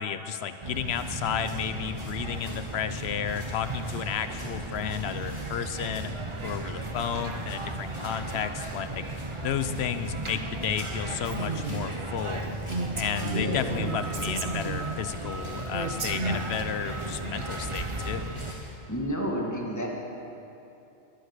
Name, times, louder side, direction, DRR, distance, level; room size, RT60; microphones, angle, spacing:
voice 1, 0.0-6.1 6.4-9.0 9.4-12.6 12.9-18.4, left 8 dB, 60° left, 11 dB, 1.0 m, -32 dB
sound 1, 0.6-18.5, right 2 dB, 25° right, 1.0 m, -35 dB
sound 2, 0.7-18.7, left 1 dB, 45° left, 3.6 m, -49 dB
Female speech woman speaking, 11.2-11.9 12.3-12.4 12.7-15.0 15.7-16.6, right 3 dB, 50° right, 1.2 m, -33 dB
voice 2, 13.2-13.9 18.9-19.9, equal, 15° left, -2 dB, 2.0 m, -31 dB
22.0 x 9.9 x 6.6 m, 2.8 s
omnidirectional pair, 1.2 m